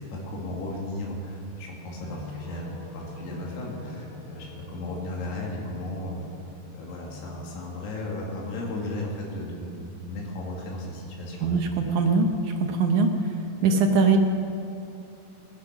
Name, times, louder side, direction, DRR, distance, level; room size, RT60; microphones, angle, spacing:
voice 1, 0.1-6.3 6.7-11.6, left 1 dB, 85° left, -2 dB, 4.3 m, -35 dB
sound 1, 2.0-7.5, left 3 dB, 30° left, 3.3 m, -43 dB
voice 2, 11.4-13.1 13.6-14.2, right 4 dB, 75° right, 4 dB, 1.8 m, -22 dB
19.0 x 11.0 x 6.0 m, 2.8 s
omnidirectional pair, 4.6 m